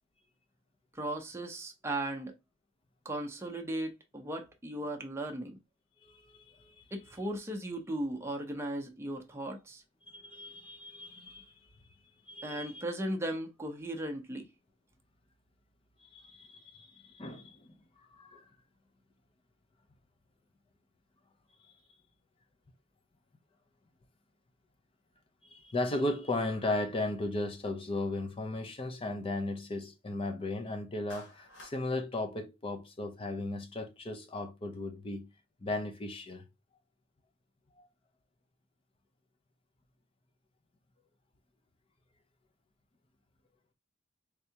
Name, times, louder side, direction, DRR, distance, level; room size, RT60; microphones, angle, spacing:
voice 1, 0.9-2.4 3.0-5.6 6.9-9.8 12.4-14.5, right 1 dB, 15° right, 0.6 m, -37 dB
voice 2, 6.0-6.8 10.1-11.5 12.3-12.8 16.0-17.7 18.2-18.5 25.4-35.3 35.6-36.5 37.8-37.9, left 2 dB, 30° left, 0.6 m, -36 dB
Clapping, 31.1-31.8, left 1 dB, 65° left, 1.0 m, -50 dB
3.6 x 3.3 x 2.8 m
head